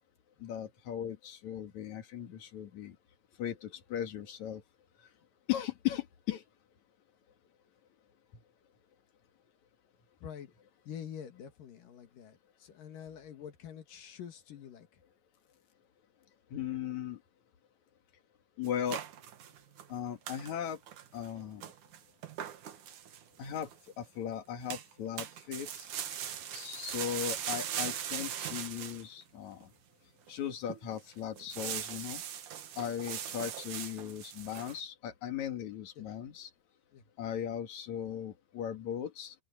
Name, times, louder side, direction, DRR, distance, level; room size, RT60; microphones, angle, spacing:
voice 1, 0.4-3.0 3.4-4.6 5.5-6.4 16.5-17.2 18.6-19.0 19.9-20.8 21.1-21.6 23.4-23.7 24.0-25.9 26.5-29.7 30.3-32.2 32.8-36.5 37.2-39.3, left 10 dB, 60° left, 3.3 m, -37 dB
voice 2, 10.2-10.5 10.9-15.0 36.0-36.1 36.9-37.1, left 8 dB, 75° left, 3.5 m, -47 dB
sound 1, 18.6-19.9 20.3-20.5 20.9-21.3 21.6-23.7 24.7-24.9 25.2-29.0 29.6-29.7 30.3-30.4 30.7-31.0 31.4-34.8, right 10 dB, 65° right, 2.9 m, -40 dB
open air
omnidirectional pair, 3.9 m